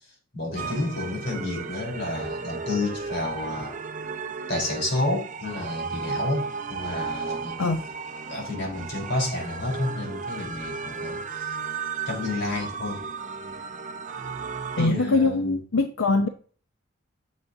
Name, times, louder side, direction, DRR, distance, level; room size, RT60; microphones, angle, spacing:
voice 1, 0.3-3.8 4.5-7.6 8.3-11.5 12.1-13.1 14.8-15.6, left 2 dB, 55° left, 1 dB, 3.8 m, -30 dB
sound 1, 0.5-14.9, right 5 dB, 40° right, 0.7 m, -34 dB
voice 2, 14.8-16.3, left 3 dB, 90° left, 7 dB, 0.7 m, -22 dB
9.5 x 7.3 x 2.7 m, 0.42 s
head